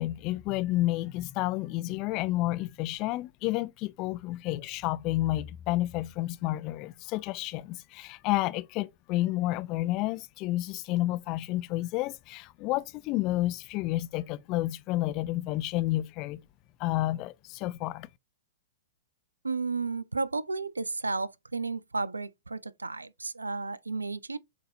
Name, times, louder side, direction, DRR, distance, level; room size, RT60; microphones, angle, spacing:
voice 1, 0.0-16.4 16.8-18.1, left 17 dB, 40° left, 0.4 m, -30 dB
voice 2, 19.4-24.4, right 3 dB, 90° right, 0.3 m, -33 dB
7.2 x 2.7 x 2.7 m
figure-of-eight pair, 105°, 0 cm